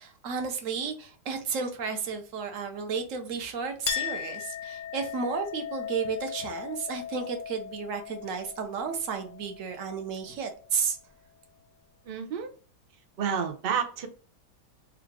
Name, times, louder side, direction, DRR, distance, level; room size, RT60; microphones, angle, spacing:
voice 1, 0.0-11.0, right 5 dB, 60° right, 1.0 m, -33 dB
Chink clink, 3.9-10.9, left 9 dB, 65° left, 0.8 m, -38 dB
voice 2, 12.0-12.5 13.2-14.1, right 7 dB, 90° right, 0.5 m, -30 dB
3.7 x 2.4 x 4.5 m
omnidirectional pair, 1.8 m